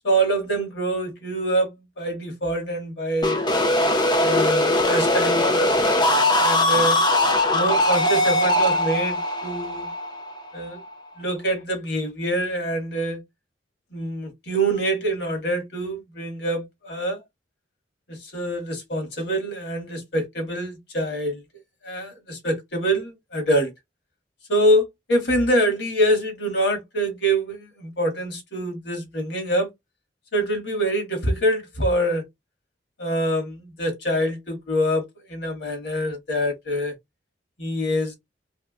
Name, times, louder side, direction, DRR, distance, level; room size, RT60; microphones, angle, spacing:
voice 1, 0.0-3.4 4.2-5.7 6.3-7.0 7.5-9.9 10.5-10.8 11.2-13.2 13.9-17.2 18.1-21.4 21.8-23.7 24.5-29.7 30.3-32.2 33.0-36.9 37.6-38.1, right 1 dB, 75° left, 1.7 m, -25 dB
sound 1, 3.2-10.9, left 1 dB, 25° left, 0.5 m, -21 dB
3.4 x 3.3 x 2.3 m
head